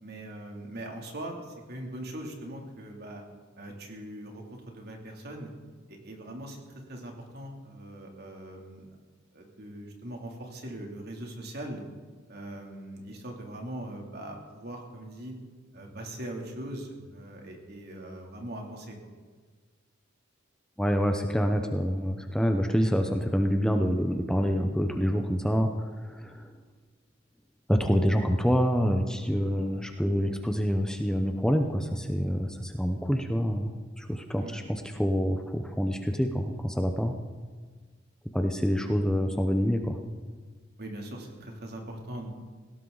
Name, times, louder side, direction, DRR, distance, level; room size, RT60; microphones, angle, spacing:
voice 1, 0.0-3.2 3.6-5.5 5.9-6.6 6.9-8.9 9.3-11.8 12.3-15.3 15.7-19.0 34.4-34.5 40.8-42.3, right 1 dB, 55° right, 1 dB, 3.0 m, -41 dB
voice 2, 20.8-26.5 27.7-33.7 34.0-37.2 38.3-40.0, equal, 5° left, 4 dB, 0.8 m, -27 dB
18.5 x 17.0 x 4.0 m, 1.5 s
head